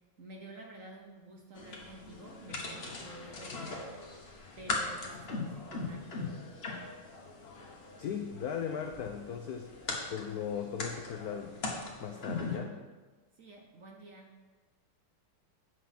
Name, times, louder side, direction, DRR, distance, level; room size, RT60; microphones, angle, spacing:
voice 1, 0.0-4.0 4.6-6.3 13.4-14.3, right 2 dB, 55° right, 1 dB, 1.0 m, -50 dB
sound 1, 1.6-12.6, left 3 dB, 35° left, 1.2 m, -40 dB
voice 2, 8.0-11.6 12.0-12.8, left 7 dB, 90° left, 5 dB, 0.8 m, -38 dB
8.3 x 6.2 x 5.8 m, 1.3 s
omnidirectional pair, 2.3 m